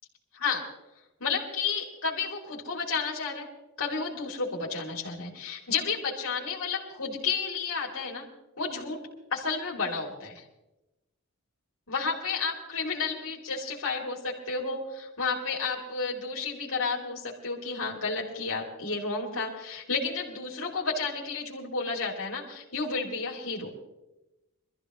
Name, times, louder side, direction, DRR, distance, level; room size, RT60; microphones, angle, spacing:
voice 1, 1.2-3.5 3.8-8.2 8.6-10.4 11.9-23.7, left 4 dB, 70° left, -3 dB, 3.0 m, -31 dB
24.0 x 15.0 x 3.1 m, 0.97 s
head